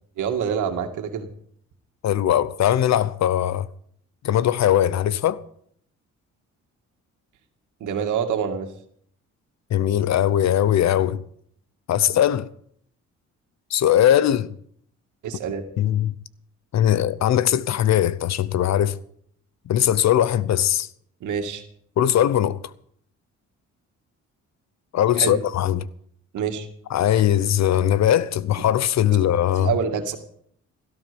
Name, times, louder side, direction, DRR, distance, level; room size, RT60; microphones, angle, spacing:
voice 1, 0.2-1.3 7.8-8.7 15.2-15.6 21.2-21.6 25.2-25.4 26.3-26.7 29.6-30.2, right 7 dB, 80° right, 2.3 m, -26 dB
voice 2, 2.0-3.7 4.2-5.4 9.7-11.2 11.9-12.5 13.7-14.5 15.8-16.1 16.7-19.0 19.7-20.9 22.0-22.6 24.9-25.9 26.9-29.7, left 11 dB, 65° left, 0.8 m, -20 dB
17.0 x 13.5 x 5.3 m
cardioid pair, 90°, 30 cm